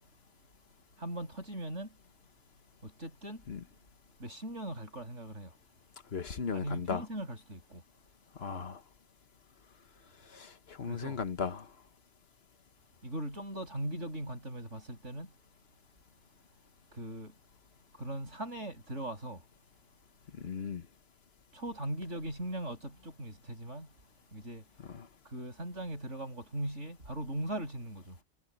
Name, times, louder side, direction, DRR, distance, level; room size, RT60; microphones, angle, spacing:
voice 1, 1.0-1.9 2.8-3.4 4.2-5.5 6.5-7.8 10.8-11.2 13.0-15.3 16.9-17.3 17.9-19.4 21.5-23.9 24.3-24.6 25.2-28.2, right 1 dB, 85° right, 7.8 m, -39 dB
voice 2, 6.1-7.1 8.4-8.8 10.3-11.7 20.4-20.8 24.8-25.1, left 6 dB, 60° left, 1.5 m, -37 dB
omnidirectional pair, 1.2 m